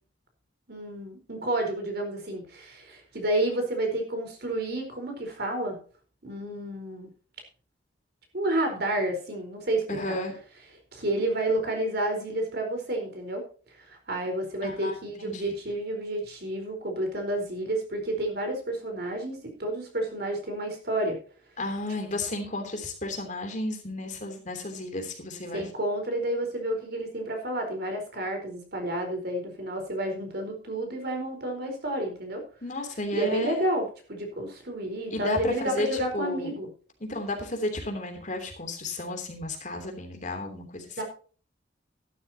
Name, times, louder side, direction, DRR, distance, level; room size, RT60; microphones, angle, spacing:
voice 1, 0.7-5.8 6.2-7.1 8.3-10.2 10.9-13.4 13.9-21.2 25.5-32.4 33.1-36.7 41.0-41.1, right 1 dB, 55° right, 4 dB, 4.5 m, -30 dB
voice 2, 9.9-10.4 14.6-15.0 15.2-15.5 21.6-25.6 32.6-33.6 35.1-36.5 37.0-41.0, left 2 dB, 40° left, 4 dB, 3.2 m, -33 dB
13.5 x 12.5 x 2.9 m, 0.39 s
head